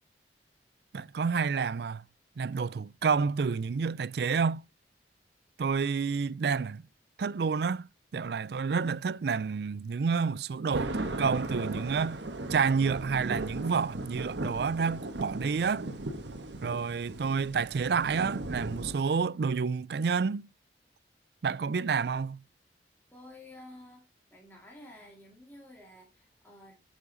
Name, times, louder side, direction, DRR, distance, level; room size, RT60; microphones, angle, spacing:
voice 1, 0.9-2.0 2.4-4.6 5.6-6.8 7.2-12.2 12.5-15.9 16.6-20.5 21.4-22.4, right 5 dB, 65° right, 0.4 m, -29 dB
sound 1, 10.7-18.9, right 2 dB, 85° right, 1.4 m, -37 dB
voice 2, 23.1-24.0 24.3-26.8, left 1 dB, 10° left, 2.5 m, -51 dB
8.5 x 7.4 x 4.0 m
head